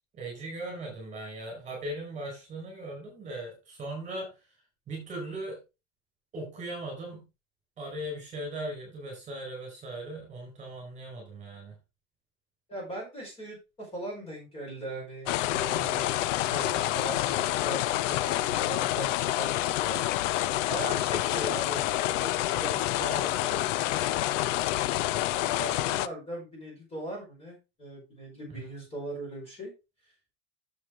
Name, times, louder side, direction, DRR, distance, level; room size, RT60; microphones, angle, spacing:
voice 1, 0.1-4.5 4.9-5.6 6.3-7.2 7.8-11.8 28.5-28.7, right 1 dB, 20° right, 0 dB, 4.7 m, -38 dB
voice 2, 12.7-20.0 20.7-22.3 22.5-24.5 25.6-29.7, right 1 dB, 15° left, -1 dB, 5.0 m, -40 dB
sound 1, 15.3-26.1, left 15 dB, 70° left, 0.7 m, -28 dB
9.4 x 7.4 x 3.8 m, 0.27 s
supercardioid pair, 175°, 38 cm